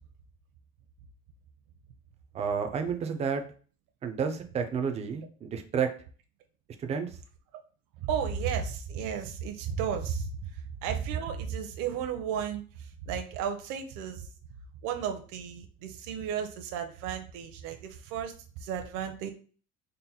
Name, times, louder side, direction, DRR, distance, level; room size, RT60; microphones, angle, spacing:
voice 1, 2.3-3.4 4.0-5.9 6.8-7.2, right 6 dB, 20° right, 7 dB, 0.3 m, -30 dB
voice 2, 8.1-10.5 10.8-14.3 14.8-18.3 18.6-19.3, right 7 dB, 70° right, 5 dB, 0.7 m, -33 dB
3.9 x 2.1 x 4.1 m, 0.41 s
cardioid pair, 155°, 34 cm